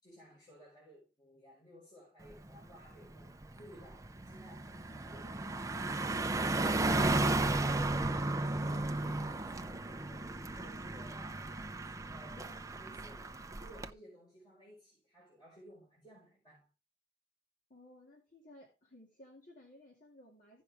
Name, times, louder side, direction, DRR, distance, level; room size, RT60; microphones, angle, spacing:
voice 1, 0.0-6.4 6.6-16.7, equal, 25° left, 5.2 m, -58 dB
Car passing by, 2.3-2.5 2.9-13.9, right 2 dB, 20° right, 0.6 m, -34 dB
voice 2, 17.7-20.6, left 1 dB, 50° left, 2.3 m, -57 dB
15.5 x 5.6 x 3.5 m
head